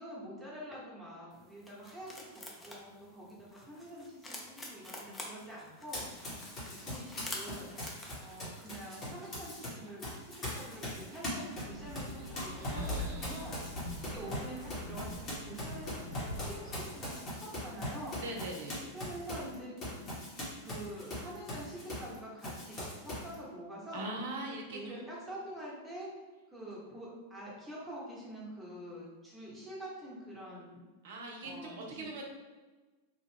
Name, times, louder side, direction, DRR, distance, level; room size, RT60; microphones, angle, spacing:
voice 1, 0.0-6.1 6.6-7.7 8.2-18.2 18.9-19.8 20.6-24.1 24.7-26.1 26.5-30.8 31.4-32.1, right 1 dB, 5° right, -6 dB, 1.1 m, -46 dB
sound 1, 1.3-14.2, left 1 dB, 10° left, 0.6 m, -50 dB
Run, 5.9-9.7 10.0-22.1 22.4-23.3, left 1 dB, 30° left, 1.2 m, -41 dB
sound 2, 11.7-17.0, left 1 dB, 85° left, 0.7 m, -42 dB
voice 2, 12.6-13.4 18.2-18.8 23.9-25.0 31.0-32.2, right 2 dB, 55° right, 1 dB, 0.6 m, -42 dB
2.9 x 2.4 x 3.4 m, 1.3 s
figure-of-eight pair, 90°, 0 cm